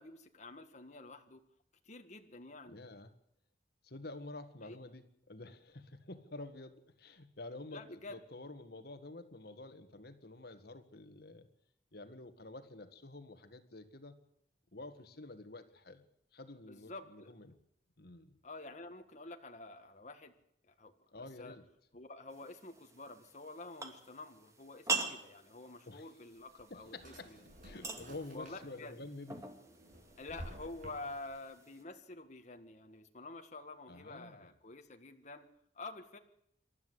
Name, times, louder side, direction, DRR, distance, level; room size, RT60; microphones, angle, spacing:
voice 1, 0.0-1.4 1.9-2.8 4.6-4.8 7.7-8.2 16.7-17.3 18.4-20.3 20.7-20.9 21.4-21.6 21.9-27.4 28.3-29.0 30.2-35.4 35.8-36.2, left 2 dB, 40° left, 5 dB, 1.7 m, -49 dB
voice 2, 2.7-3.1 3.8-11.5 11.9-14.2 14.7-16.0 16.3-17.6 18.0-18.4 21.1-21.6 25.9-26.1 26.7-27.3 27.6-29.5 33.9-34.5, left 2 dB, 60° left, 9 dB, 1.8 m, -49 dB
sound 1, 22.3-31.8, right 4 dB, 20° right, 2.5 m, -44 dB
Drawer open or close, 26.3-28.9 29.3-31.4, equal, 50° right, 6.9 m, -52 dB
27.5 x 13.0 x 8.2 m, 0.75 s
head